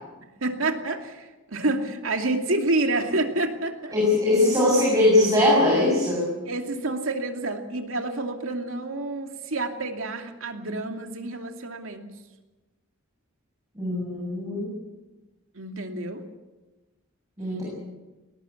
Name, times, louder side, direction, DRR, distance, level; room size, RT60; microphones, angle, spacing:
voice 1, 0.4-3.9 6.5-12.0 15.5-16.2, right 2 dB, 70° right, 4 dB, 2.6 m, -28 dB
voice 2, 3.9-6.3 13.8-14.7 17.4-17.6, left 1 dB, 15° right, -4 dB, 7.2 m, -21 dB
20.0 x 19.5 x 8.5 m, 1.1 s
head